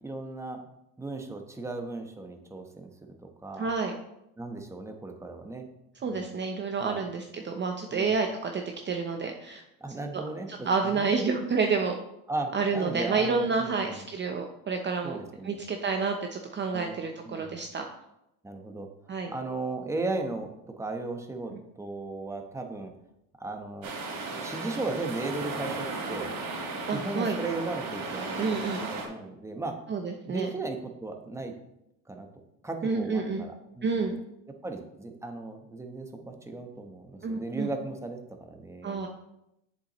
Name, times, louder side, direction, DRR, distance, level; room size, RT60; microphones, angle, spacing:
voice 1, 0.0-0.6 1.0-3.1 3.4-3.7 4.4-5.6 6.0-6.4 6.8-7.1 7.9-8.1 9.8-11.1 12.3-14.0 15.0-15.6 16.7-17.0 17.2-17.6 18.4-18.9 19.3-20.5 20.8-21.5 21.8-22.9 23.4-23.9 24.2-26.3 26.9-29.7 30.2-31.5 32.1-32.3 32.6-34.1 34.6-39.0, right 3 dB, 5° right, 4 dB, 1.0 m, -36 dB
voice 2, 3.6-3.9 6.0-9.6 10.1-10.2 10.5-12.0 12.5-15.2 15.4-17.8 19.1-19.3 26.9-27.4 28.4-28.8 29.9-30.5 32.8-33.4 33.8-34.2 37.2-37.7 38.8-39.1, right 4 dB, 30° right, 3 dB, 0.7 m, -29 dB
sound 1, 23.8-29.1, right 3 dB, 60° right, 2.8 m, -35 dB
7.6 x 7.1 x 3.0 m, 0.84 s
supercardioid pair, 95°, 39 cm